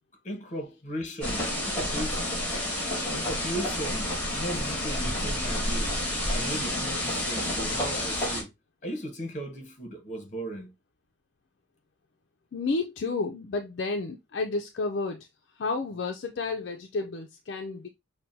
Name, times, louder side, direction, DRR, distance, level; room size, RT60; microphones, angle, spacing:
voice 1, 0.2-2.3 3.1-6.0 6.3-8.5 8.8-10.7, right 1 dB, 40° left, 1.0 m, -37 dB
sound 1, 1.2-8.4, left 1 dB, 10° left, 2.0 m, -29 dB
voice 2, 5.0-5.4 12.5-15.3 15.5-17.9, left 3 dB, 60° left, 0.4 m, -31 dB
5.7 x 2.2 x 2.7 m
head